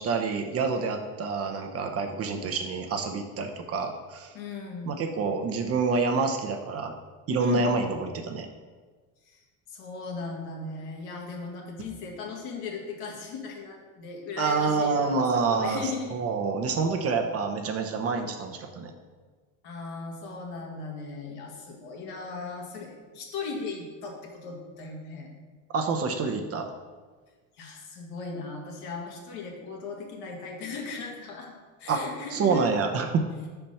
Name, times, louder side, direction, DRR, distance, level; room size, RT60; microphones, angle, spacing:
voice 1, 0.0-4.3 4.9-6.9 7.3-8.5 14.4-15.8 16.1-18.9 25.7-26.7 31.9-32.0 32.3-33.3, right 4 dB, 35° right, 4 dB, 0.8 m, -27 dB
voice 2, 4.3-5.0 7.4-7.8 9.3-16.2 19.6-25.3 27.6-31.5 31.8-32.7, left 4 dB, 70° left, 0 dB, 1.7 m, -37 dB
5.1 x 4.5 x 5.6 m, 1.4 s
supercardioid pair, 105°, 38 cm